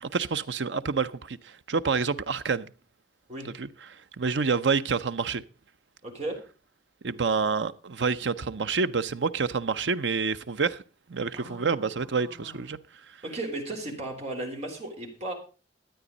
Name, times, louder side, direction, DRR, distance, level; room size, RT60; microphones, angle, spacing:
voice 1, 0.0-2.7 3.4-5.4 7.0-10.8 11.1-12.8 13.1-13.2, right 5 dB, 80° right, 0.7 m, -28 dB
voice 2, 6.0-6.4 11.4-11.9 12.1-12.6 13.2-15.3, right 2 dB, 40° right, 3.7 m, -36 dB
13.0 x 9.2 x 5.2 m
head